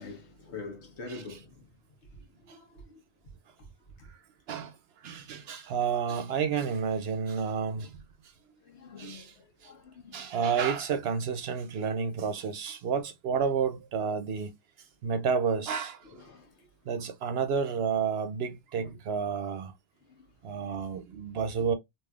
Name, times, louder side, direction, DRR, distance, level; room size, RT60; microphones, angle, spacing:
voice 1, 0.0-1.7 2.4-3.0 4.0-4.1 8.6-10.3 16.1-16.7, left 3 dB, 70° left, 1.3 m, -45 dB
voice 2, 5.0-7.9 9.0-9.3 10.1-14.5 15.0-16.0 16.9-19.7 20.4-21.7, right 6 dB, 65° right, 0.8 m, -30 dB
3.4 x 2.6 x 2.3 m
omnidirectional pair, 1.2 m